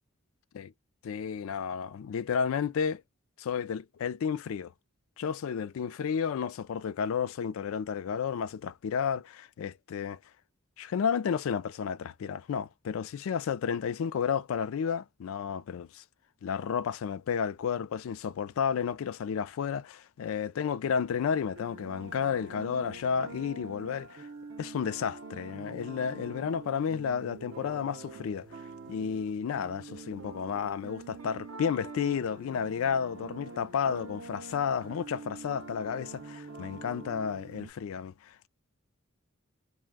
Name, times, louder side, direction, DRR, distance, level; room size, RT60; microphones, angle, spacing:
voice 1, 1.0-3.0 3.4-4.7 5.2-10.2 10.8-16.0 16.4-24.3 24.6-28.5 28.9-38.5, left 7 dB, 80° left, 0.3 m, -32 dB
sound 1, 21.5-37.7, right 3 dB, 70° right, 0.6 m, -45 dB
2.5 x 2.1 x 3.4 m
head